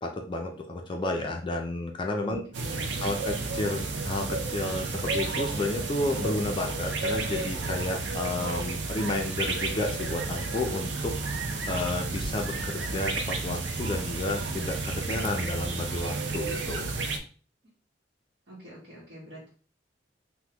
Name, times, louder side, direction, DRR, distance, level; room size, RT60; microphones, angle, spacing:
voice 1, 0.0-2.4 3.0-11.2 11.7-16.9, left 2 dB, 30° left, 2 dB, 0.4 m, -31 dB
voice 2, 2.2-3.1 18.5-19.5, equal, 55° right, -7 dB, 1.0 m, -45 dB
sound 1, 2.5-17.2, right 3 dB, 75° right, 0.5 m, -32 dB
3.4 x 2.1 x 2.9 m, 0.40 s
head